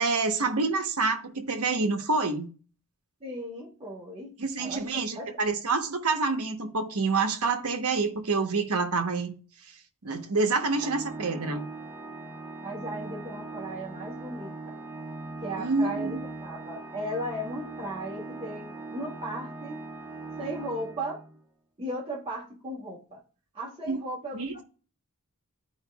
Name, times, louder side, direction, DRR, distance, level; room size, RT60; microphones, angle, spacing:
voice 1, 0.0-2.5 4.4-9.3 10.0-11.6 15.6-16.2 23.9-24.0 24.3-24.6, right 3 dB, 85° right, 1.0 m, -27 dB
voice 2, 3.2-5.4 10.8-10.9 12.6-14.7 15.4-19.9 20.4-21.2 21.8-23.2 23.5-24.6, right 1 dB, 25° right, 2.1 m, -36 dB
Organ, 10.6-21.4, right 2 dB, 10° right, 0.9 m, -40 dB
13.0 x 5.0 x 2.3 m
head